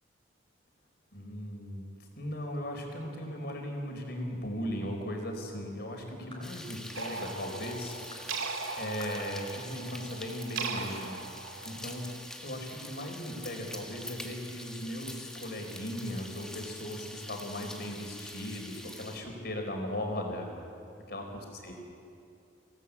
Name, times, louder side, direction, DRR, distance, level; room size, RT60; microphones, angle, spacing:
voice 1, 1.1-1.8 2.2-8.3 8.8-11.2 11.6-12.1 12.4-20.6 21.1-21.7, left 1 dB, 50° left, 2 dB, 4.4 m, -38 dB
sound 1, 6.3-6.5 7.2-7.4 8.1-8.3 9.0-9.2 9.9-10.0 10.8-11.0, left 2 dB, 25° left, 3.6 m, -49 dB
sound 2, 6.4-19.2, left 1 dB, 5° left, 1.5 m, -45 dB
sound 3, 6.9-12.2, right 4 dB, 85° right, 2.2 m, -39 dB
25.5 x 18.0 x 8.5 m, 2.6 s
head